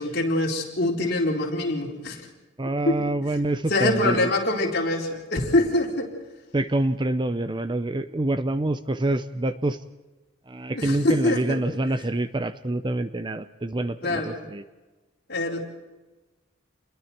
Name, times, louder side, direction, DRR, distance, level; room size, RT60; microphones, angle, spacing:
voice 1, 0.0-2.3 2.9-3.1 3.7-6.1 10.7-11.6 14.0-14.4 15.3-15.6, left 2 dB, 50° left, -1 dB, 4.4 m, -24 dB
voice 2, 2.6-4.3 6.5-9.8 10.5-14.6, right 1 dB, 25° right, 12 dB, 0.6 m, -26 dB
29.0 x 22.0 x 4.5 m, 1.1 s
head